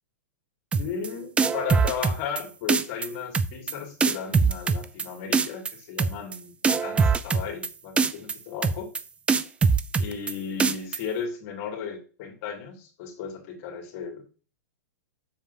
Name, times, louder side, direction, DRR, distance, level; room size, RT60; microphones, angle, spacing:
voice 1, 0.7-8.9 10.0-14.2, left 7 dB, 50° left, -1 dB, 2.5 m, -35 dB
sound 1, 0.7-1.1 1.4-2.4 2.7-3.1 3.3-3.7 4.0-5.0 5.3-5.7 6.0-6.4 6.6-7.7 8.0-8.3 8.6-9.0 9.3-10.3 10.6-11.0, right 5 dB, 10° right, 0.4 m, -22 dB
7.1 x 6.9 x 2.8 m, 0.37 s
hypercardioid pair, 125°, 9 cm